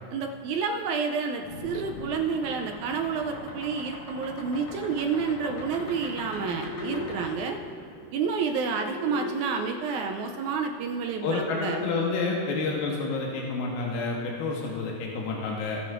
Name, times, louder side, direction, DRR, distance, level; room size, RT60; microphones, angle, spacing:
voice 1, 0.1-7.6 8.1-11.8, right 5 dB, 85° right, 3 dB, 1.6 m, -29 dB
sound 1, 1.4-9.3 10.6-11.9, left 2 dB, 65° left, 3.4 m, -39 dB
voice 2, 11.2-15.8, left 3 dB, 85° left, -2 dB, 2.7 m, -29 dB
19.0 x 7.7 x 2.5 m, 2.4 s
omnidirectional pair, 4.0 m